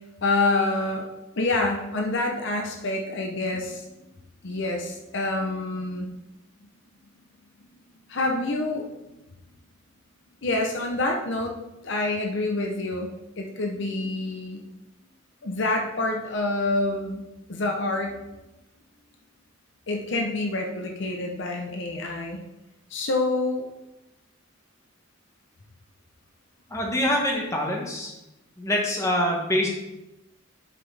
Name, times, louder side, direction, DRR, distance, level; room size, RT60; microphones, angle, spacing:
voice 1, 0.2-1.1 1.4-3.9 4.4-6.1 8.1-9.1 10.4-11.5 11.8-13.1 13.4-14.6 15.4-18.1 19.9-22.4 22.9-23.6, left 2 dB, 60° left, 2 dB, 0.8 m, -27 dB
voice 2, 26.7-28.1 28.6-29.7, left 1 dB, 15° left, -1 dB, 1.2 m, -25 dB
7.5 x 5.8 x 3.4 m, 0.95 s
head